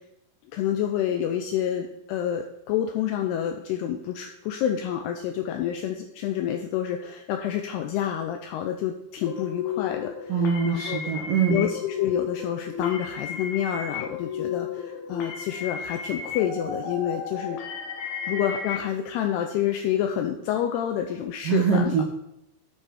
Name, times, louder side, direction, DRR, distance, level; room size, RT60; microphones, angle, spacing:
voice 1, 0.5-10.3 10.6-11.0 11.5-17.6 18.3-21.9, left 10 dB, 90° left, 5 dB, 2.3 m, -28 dB
sound 1, 9.3-18.8, left 6 dB, 70° left, 2.5 m, -33 dB
voice 2, 10.3-11.6 21.4-22.0, right 6 dB, 75° right, -1 dB, 2.1 m, -23 dB
9.1 x 5.4 x 4.8 m, 0.82 s
omnidirectional pair, 5.2 m